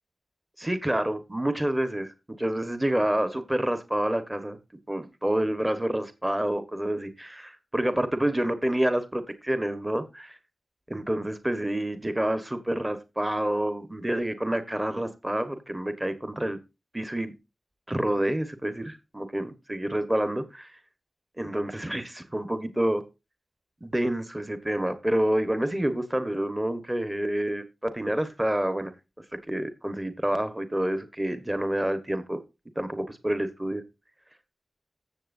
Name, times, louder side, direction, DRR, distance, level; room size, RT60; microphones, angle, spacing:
voice 1, 0.6-4.6 4.9-10.4 10.9-16.6 16.9-17.3 17.9-20.8 21.4-23.0 23.8-28.9 29.5-32.4 32.8-33.8, right 1 dB, 15° right, 1.2 m, -28 dB
15.0 x 7.4 x 2.6 m
wide cardioid pair, 85°, 0 cm